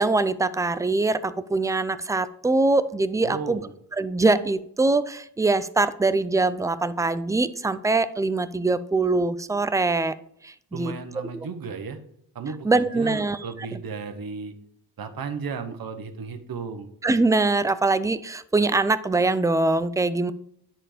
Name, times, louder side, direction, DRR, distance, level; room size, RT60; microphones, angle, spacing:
voice 1, 0.0-3.6 4.0-10.1 10.4-10.9 12.6-13.4 17.0-20.3, right 3 dB, 10° right, 13 dB, 0.4 m, -23 dB
voice 2, 3.2-3.7 10.7-12.0 12.3-14.5 15.0-16.9, right 5 dB, 65° right, 8 dB, 1.1 m, -34 dB
9.9 x 4.4 x 5.0 m, 0.68 s
wide cardioid pair, 110°, 38 cm